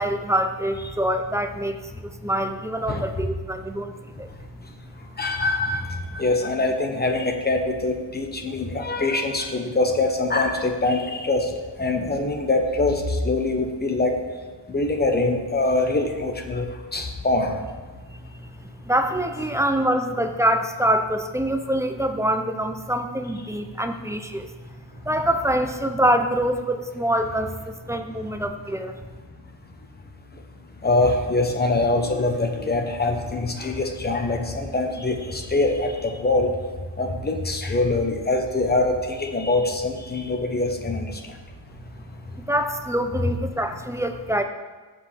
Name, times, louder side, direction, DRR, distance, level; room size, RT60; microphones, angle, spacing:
voice 1, 0.0-4.3 18.1-18.5 18.8-24.5 25.0-29.0 42.5-44.4, right 1 dB, 5° right, 6 dB, 0.5 m, -25 dB
voice 2, 5.2-11.5 11.8-14.2 14.7-17.6 30.8-36.5 37.0-41.3, left 2 dB, 20° left, 4 dB, 1.0 m, -24 dB
15.0 x 5.2 x 3.5 m, 1.3 s
cardioid pair, 130°, 44 cm